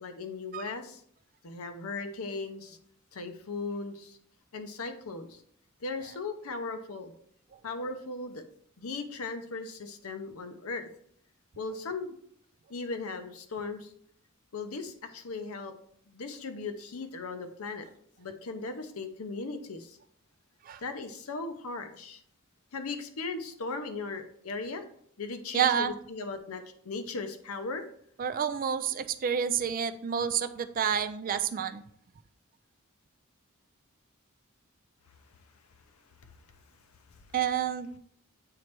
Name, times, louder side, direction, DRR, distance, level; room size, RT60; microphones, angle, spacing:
voice 1, 0.0-1.0 1.4-2.8 3.1-4.2 4.5-5.4 5.8-7.1 7.6-8.4 8.8-10.9 11.6-12.1 12.7-13.9 14.5-15.7 16.1-17.9 18.2-20.0 20.8-22.2 22.7-24.8 25.2-27.8, left 3 dB, 85° left, 8 dB, 0.7 m, -37 dB
voice 2, 25.5-25.9 28.2-31.8 37.3-38.0, right 8 dB, 40° right, 10 dB, 0.4 m, -29 dB
7.6 x 3.2 x 4.4 m, 0.65 s
head